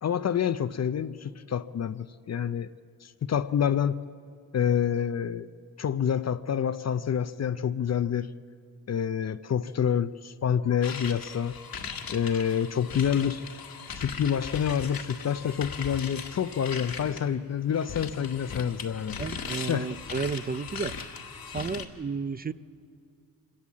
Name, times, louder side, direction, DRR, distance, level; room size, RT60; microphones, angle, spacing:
voice 1, 0.0-2.7 3.0-4.0 4.5-5.5 5.8-8.3 8.9-11.6 12.1-13.4 13.9-19.2 19.7-19.9, left 8 dB, 45° left, 13 dB, 0.5 m, -27 dB
sound 1, 10.8-17.3 17.7-21.8, left 5 dB, 65° left, 1.8 m, -39 dB
voice 2, 19.2-21.0 21.5-22.5, right 5 dB, 25° right, 15 dB, 0.4 m, -32 dB
25.5 x 17.0 x 7.4 m, 2.3 s
cardioid pair, 80°, 38 cm